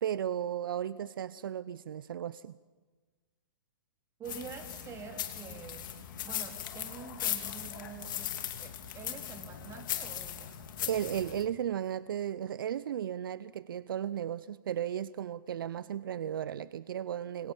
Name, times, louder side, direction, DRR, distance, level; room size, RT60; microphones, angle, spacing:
voice 1, 0.0-2.5 10.9-17.5, right 10 dB, 75° right, 17 dB, 0.7 m, -35 dB
sound 1, 4.2-11.4, left 11 dB, 65° left, 2.9 m, -38 dB
voice 2, 4.2-5.9 6.2-8.3 8.6-10.5, right 6 dB, 25° right, 4 dB, 3.5 m, -46 dB
27.0 x 25.5 x 5.5 m, 1.3 s
hypercardioid pair, 120°, 12 cm